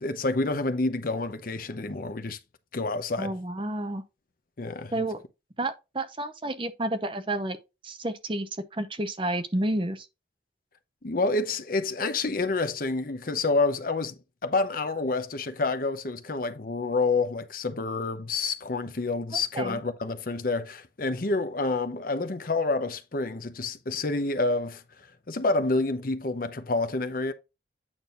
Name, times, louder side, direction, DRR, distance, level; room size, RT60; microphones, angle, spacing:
voice 1, 0.0-2.4 2.7-3.4 4.6-4.9 11.0-27.3, left 3 dB, 50° left, 0.8 m, -28 dB
voice 2, 3.2-4.0 4.9-5.2 5.6-7.6 7.8-10.1 19.5-19.8, right 1 dB, 30° right, 0.9 m, -30 dB
8.9 x 6.1 x 2.5 m
head